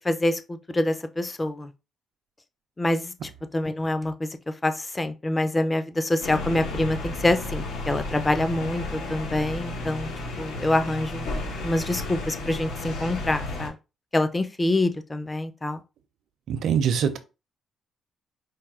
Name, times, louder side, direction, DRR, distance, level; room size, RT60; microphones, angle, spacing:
voice 1, 0.0-1.7 2.8-3.1 3.5-4.3 4.6-10.1 10.4-11.3 11.6-13.7 14.1-15.8, left 1 dB, 20° left, 0.6 m, -26 dB
sound 1, 6.2-13.7, left 2 dB, 85° left, 1.7 m, -33 dB
voice 2, 16.5-17.2, right 7 dB, 70° right, 0.7 m, -23 dB
4.5 x 2.3 x 4.7 m
cardioid pair, 90°, 0 cm